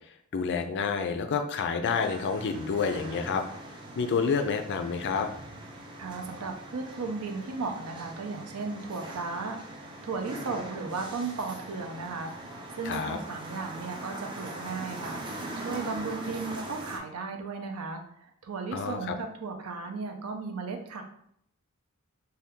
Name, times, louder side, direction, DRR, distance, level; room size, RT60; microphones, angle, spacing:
voice 1, 0.3-3.4 4.0-5.3 12.9-13.2 18.7-19.1, left 5 dB, 55° left, 7 dB, 0.4 m, -29 dB
sound 1, 1.8-17.0, right 1 dB, 20° right, 0.4 m, -41 dB
voice 2, 6.0-15.2 15.6-21.0, right 4 dB, 75° right, 4 dB, 0.5 m, -35 dB
2.7 x 2.2 x 3.5 m, 0.68 s
head